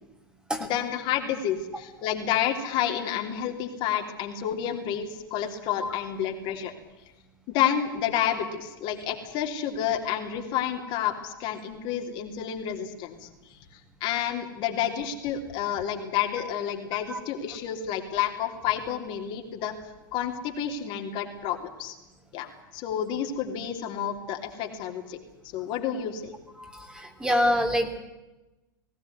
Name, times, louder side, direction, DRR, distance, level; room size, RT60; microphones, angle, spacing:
voice 1, 0.6-6.7 7.5-13.3 14.0-19.7 20.1-21.9 22.3-25.2 25.5-26.3, left 9 dB, 45° left, 3 dB, 3.2 m, -30 dB
voice 2, 26.6-28.0, equal, 5° right, 4 dB, 2.9 m, -26 dB
20.0 x 16.5 x 9.6 m, 1.1 s
hypercardioid pair, 95°, 12 cm